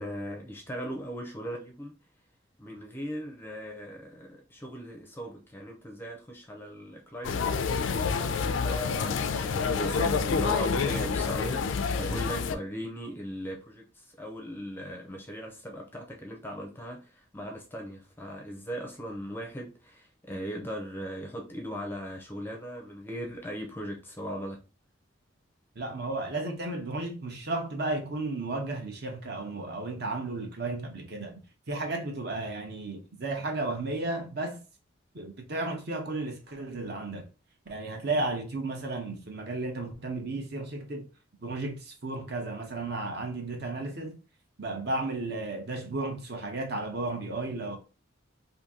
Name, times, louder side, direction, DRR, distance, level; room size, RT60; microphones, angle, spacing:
voice 1, 0.0-1.9 2.6-7.7 8.0-24.6, equal, 10° left, 0.5 m, -38 dB
sound 1, 7.2-12.6, left 5 dB, 70° left, 0.4 m, -28 dB
voice 2, 25.7-31.4 31.7-34.6 35.1-37.3 37.7-41.1 41.4-44.2 44.6-47.8, right 2 dB, 50° right, 0.8 m, -33 dB
2.8 x 2.6 x 3.6 m
head